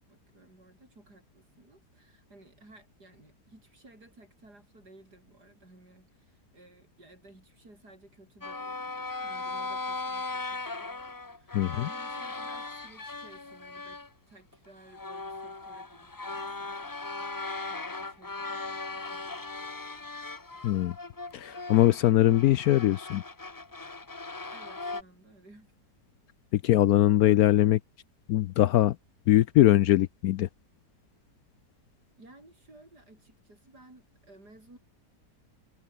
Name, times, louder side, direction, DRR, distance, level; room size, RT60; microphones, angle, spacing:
voice 1, 0.0-14.0 14.3-17.3 17.7-19.5 24.5-25.8 32.2-34.8, right 2 dB, 70° right, 8.1 m, -56 dB
sound 1, 8.4-14.1 14.5-14.6 14.9-25.0, left 3 dB, 25° left, 0.5 m, -38 dB
voice 2, 11.5-11.9 20.6-20.9 21.3-23.2 26.5-27.8 28.3-29.0 29.3-30.5, left 14 dB, 70° left, 0.9 m, -22 dB
omnidirectional pair, 1.8 m